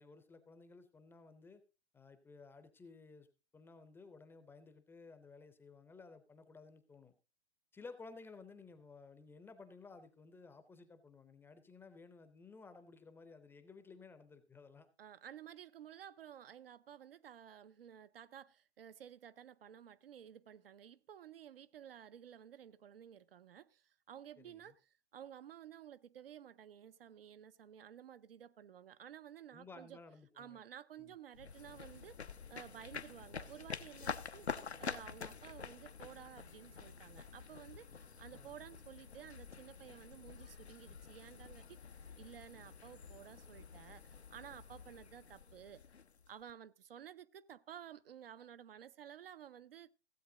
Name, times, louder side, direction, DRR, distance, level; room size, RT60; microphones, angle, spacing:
voice 1, 0.0-1.6 1.9-3.3 3.5-7.1 7.7-14.9 24.4-24.7 29.5-30.6 31.0-31.1 38.3-38.5, left 4 dB, 5° left, 0.6 m, -56 dB
voice 2, 15.0-30.0 30.4-41.8 42.2-45.8 46.3-49.9, right 9 dB, 60° right, 0.7 m, -54 dB
sound 1, 31.3-46.5, left 6 dB, 85° left, 0.8 m, -48 dB
16.0 x 7.9 x 3.8 m
figure-of-eight pair, 115°, 32 cm